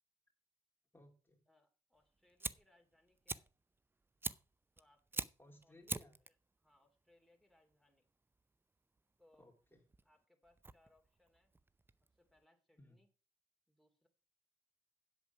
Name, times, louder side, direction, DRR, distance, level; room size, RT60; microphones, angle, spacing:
voice 1, 0.9-1.4 5.4-6.2 9.4-9.8 12.8-13.0, left 1 dB, 15° left, 1 dB, 2.7 m, -62 dB
voice 2, 1.5-3.5 4.7-5.2 5.6-5.8 6.2-8.1 9.2-9.5 10.0-11.5 12.1-13.1 13.7-14.1, left 1 dB, ahead, 2 dB, 2.9 m, -72 dB
Fire, 2.0-12.4, right 3 dB, 15° right, 0.6 m, -47 dB
8.0 x 7.4 x 5.9 m, 0.34 s
hypercardioid pair, 50°, 14 cm